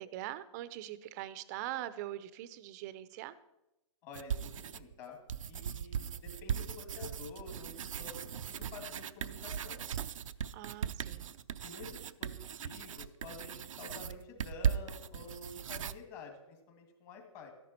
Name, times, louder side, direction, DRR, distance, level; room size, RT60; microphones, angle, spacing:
voice 1, 0.0-3.4 10.5-11.3, right 14 dB, 35° right, 15 dB, 0.6 m, -42 dB
voice 2, 4.0-5.2 5.5-9.8 11.6-17.5, left 4 dB, 35° left, 4 dB, 2.4 m, -49 dB
sound 1, 4.1-4.9 5.3-15.9, right 8 dB, 80° right, 0.6 m, -38 dB
13.0 x 10.5 x 4.4 m, 0.92 s
hypercardioid pair, 145°, 16 cm